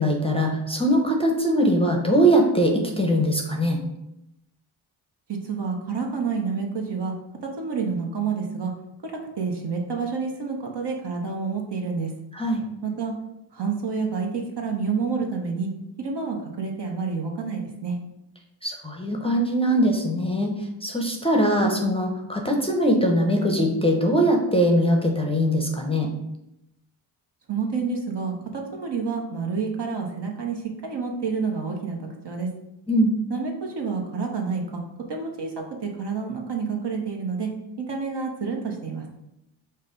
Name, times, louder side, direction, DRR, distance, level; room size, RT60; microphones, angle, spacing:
voice 1, 0.0-3.8 12.3-12.7 18.6-20.5 20.8-26.1 32.9-33.2, equal, 10° left, 1 dB, 0.7 m, -21 dB
voice 2, 5.4-7.1 7.4-8.7 9.0-12.1 12.8-13.1 13.5-15.7 16.0-18.0 21.5-21.8 27.5-32.5 33.3-34.8 35.1-37.5 37.8-39.1, right 5 dB, 55° right, 1 dB, 1.0 m, -28 dB
5.2 x 2.2 x 3.9 m, 0.85 s
cardioid pair, 60°, 50 cm